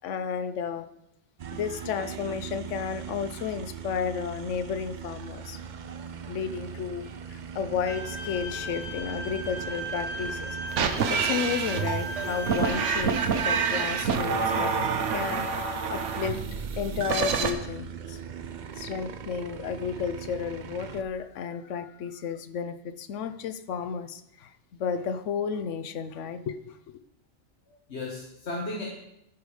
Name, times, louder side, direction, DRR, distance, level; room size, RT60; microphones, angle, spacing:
voice 1, 0.0-0.9 1.5-5.6 6.3-10.6 11.1-16.4 16.8-18.2 18.8-24.5 24.8-26.8, left 7 dB, 90° left, 11 dB, 1.0 m, -32 dB
sound 1, 1.4-21.0, right 7 dB, 50° right, 0.6 m, -40 dB
Bowed string instrument, 7.9-13.0, right 1 dB, 10° right, 2.2 m, -37 dB
sound 2, 10.7-17.5, right 5 dB, 90° right, 1.1 m, -27 dB
voice 2, 18.3-18.6 27.7-28.8, left 2 dB, 65° left, -2 dB, 1.7 m, -36 dB
12.5 x 5.2 x 4.9 m, 0.83 s
omnidirectional pair, 1.2 m